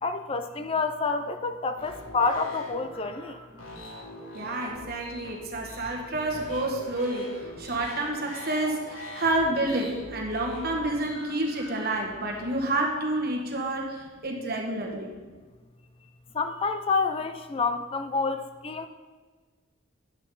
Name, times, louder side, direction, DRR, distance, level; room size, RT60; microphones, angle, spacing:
voice 1, 0.0-3.4 16.3-18.9, left 4 dB, 25° left, 8 dB, 0.4 m, -28 dB
sound 1, 1.8-12.6, left 2 dB, 80° left, 2.8 m, -42 dB
voice 2, 4.3-15.1, right 2 dB, 50° right, 0 dB, 1.5 m, -29 dB
10.0 x 8.2 x 3.9 m, 1.4 s
head